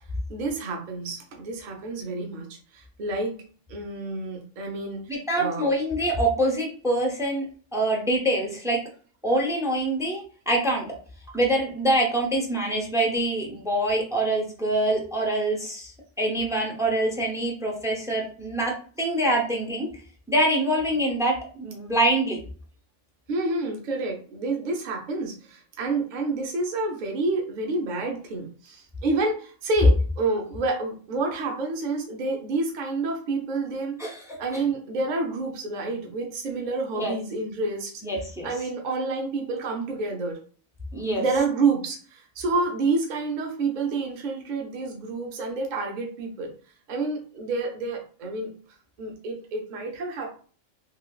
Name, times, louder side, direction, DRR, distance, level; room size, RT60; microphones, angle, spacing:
voice 1, 0.3-3.4 3.7-5.0 5.4-5.8 23.3-34.0 34.4-37.9 38.4-40.4 41.2-46.5 46.9-48.5 49.0-50.4, right 3 dB, 45° right, 1 dB, 0.7 m, -28 dB
voice 2, 5.1-7.4 7.7-8.8 9.2-10.8 11.3-19.9 20.3-22.4 34.0-34.4 37.0-37.1 38.0-38.5 40.9-41.2, right 1 dB, 5° right, 0 dB, 0.3 m, -25 dB
3.1 x 2.9 x 2.3 m, 0.41 s
omnidirectional pair, 1.3 m